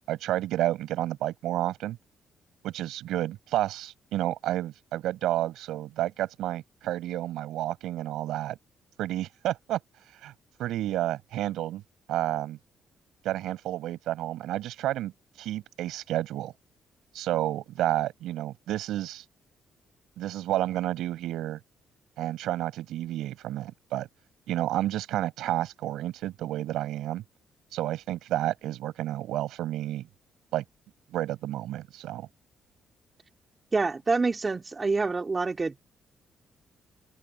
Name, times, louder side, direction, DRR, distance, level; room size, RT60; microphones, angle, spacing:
voice 1, 0.0-2.0 2.6-8.6 9.0-9.8 10.2-10.3 10.6-11.8 12.1-12.6 13.2-15.1 15.4-16.5 17.1-19.2 20.2-21.6 22.2-24.1 24.5-27.2 27.7-30.1 30.5-30.6 31.1-32.3, right 13 dB, 85° right, 6.6 m, -30 dB
voice 2, 33.7-35.8, right 3 dB, 30° right, 2.8 m, -27 dB
open air
cardioid pair, 90°, 0 cm